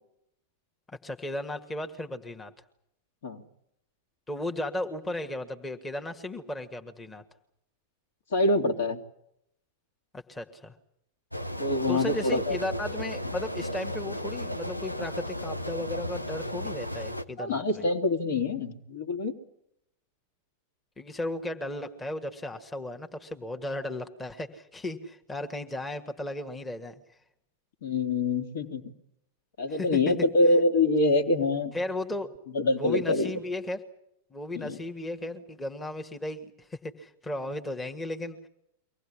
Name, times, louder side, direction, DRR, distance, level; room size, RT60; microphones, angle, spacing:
voice 1, 0.9-2.5 4.3-7.2 10.1-10.7 11.9-17.8 21.0-26.9 29.7-29.9 31.7-32.3 32.8-33.8 34.3-38.5, left 1 dB, 15° left, 5 dB, 1.7 m, -35 dB
voice 2, 8.3-9.0 11.6-12.6 17.4-19.3 27.8-28.8 29.6-31.7 32.5-33.3 34.5-34.8, left 2 dB, 60° left, 4 dB, 2.6 m, -25 dB
sound 1, 11.3-17.2, left 1 dB, 85° left, 1.0 m, -34 dB
24.0 x 18.5 x 9.9 m, 0.77 s
figure-of-eight pair, 90°, 0 cm